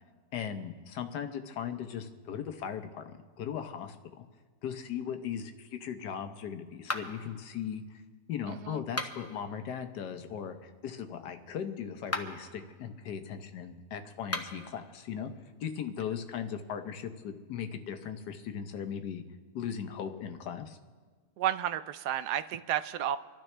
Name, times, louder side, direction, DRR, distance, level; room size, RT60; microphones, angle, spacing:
voice 1, 0.3-4.2 4.6-8.0 8.3-15.3 15.6-19.2 19.5-20.8, left 8 dB, 80° left, 7 dB, 1.5 m, -38 dB
sound 1, 6.8-7.4 8.8-9.4 12.0-12.5 14.2-14.7, left 1 dB, 15° left, 0.6 m, -36 dB
voice 2, 8.5-8.8 21.4-23.2, right 11 dB, 75° right, 12 dB, 1.1 m, -32 dB
27.5 x 12.0 x 3.3 m, 1.5 s
omnidirectional pair, 1.8 m